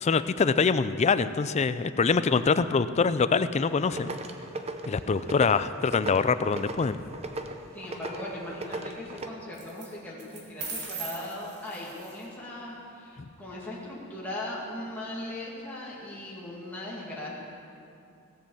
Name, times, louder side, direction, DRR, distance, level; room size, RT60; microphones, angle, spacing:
voice 1, 0.0-4.1 4.9-7.0, left 5 dB, 30° left, 13 dB, 0.4 m, -24 dB
sound 1, 3.6-9.3, right 2 dB, 30° right, 0.7 m, -38 dB
voice 2, 4.0-4.3 5.1-5.4 7.7-17.3, left 1 dB, 10° left, -6 dB, 2.1 m, -39 dB
sound 2, 6.7-7.2 9.5-9.9 10.2-12.2, right 5 dB, 50° right, 2.6 m, -40 dB
17.0 x 7.7 x 7.0 m, 2.6 s
head